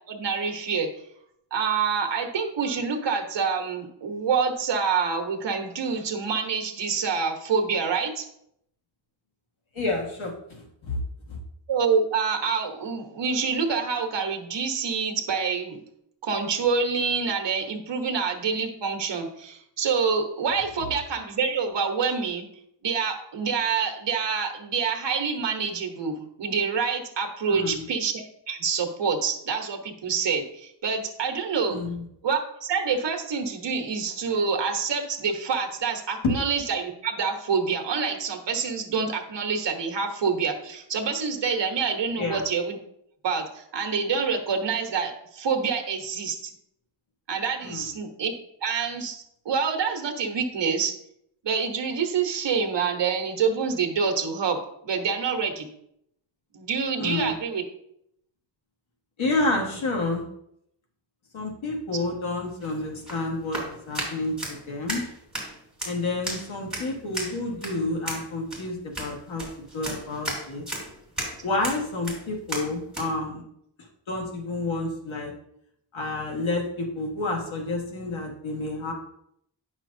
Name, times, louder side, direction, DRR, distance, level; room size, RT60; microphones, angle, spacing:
voice 1, 0.1-0.9 1.5-8.2 11.7-15.8 16.2-22.5 22.8-31.8 32.2-42.8 43.2-46.5 47.3-48.3 48.6-50.9 51.4-54.6 54.8-55.7 56.5-57.6, right 5 dB, 60° right, 3 dB, 1.1 m, -27 dB
voice 2, 9.8-11.0 11.3-11.4 27.5-27.8 31.7-32.0 36.2-36.4 42.2-42.5 47.6-47.9 57.0-57.3 59.2-60.2 61.3-65.0 65.8-69.4 69.7-70.6 71.4-73.4 74.1-75.3 75.9-78.9, left 2 dB, 75° left, 0 dB, 1.7 m, -29 dB
sound 1, 62.5-73.1, right 1 dB, ahead, 2.8 m, -35 dB
9.2 x 6.1 x 2.7 m, 0.73 s
wide cardioid pair, 130°, 47 cm